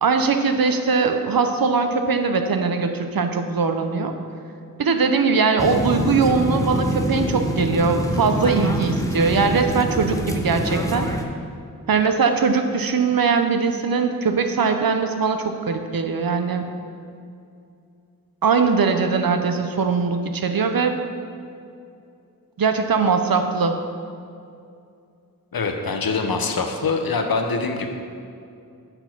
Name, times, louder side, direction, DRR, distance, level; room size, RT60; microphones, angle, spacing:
voice 1, 0.0-4.1 4.8-11.1 11.9-16.7 18.4-21.0 22.6-23.8, right 5 dB, 70° right, 6 dB, 0.7 m, -21 dB
sound 1, 5.6-11.2, equal, 10° left, 0.7 m, -25 dB
voice 2, 25.5-27.9, left 4 dB, 70° left, 4 dB, 0.8 m, -24 dB
7.7 x 4.4 x 5.9 m, 2.5 s
wide cardioid pair, 65°, 37 cm